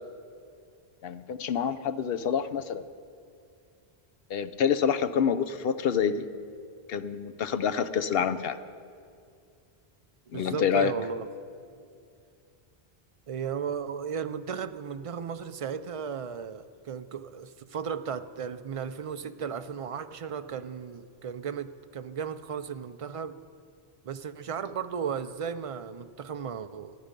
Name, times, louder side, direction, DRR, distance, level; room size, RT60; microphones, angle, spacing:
voice 1, 1.0-2.8 4.3-6.2 6.9-8.6 10.3-10.9, left 7 dB, 70° left, 11 dB, 0.9 m, -27 dB
voice 2, 10.3-11.3 13.3-23.4 24.0-26.9, right 7 dB, 45° right, 10 dB, 0.4 m, -35 dB
26.5 x 10.0 x 5.2 m, 2.4 s
omnidirectional pair, 1.1 m